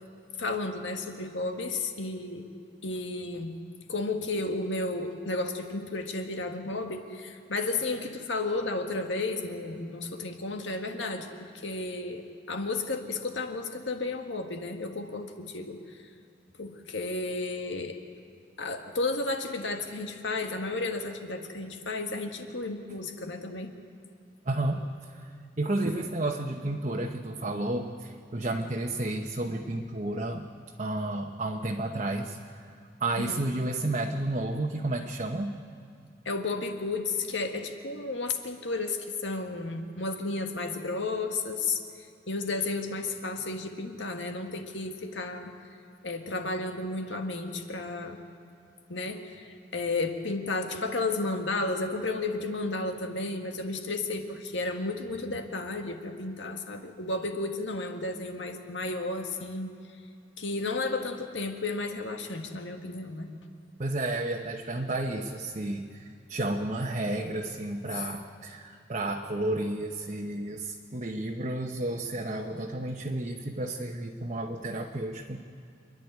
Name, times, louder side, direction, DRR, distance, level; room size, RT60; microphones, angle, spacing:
voice 1, 0.4-2.5 2.8-3.5 3.9-16.0 16.6-18.0 18.6-23.7 33.2-33.4 36.3-41.8 42.3-45.5 46.0-48.2 48.9-59.7 60.4-63.3, left 3 dB, 85° left, 5 dB, 1.7 m, -33 dB
voice 2, 24.4-30.5 30.8-35.6 63.8-75.4, right 2 dB, 40° right, 0 dB, 1.0 m, -32 dB
27.5 x 11.0 x 9.6 m, 2.4 s
head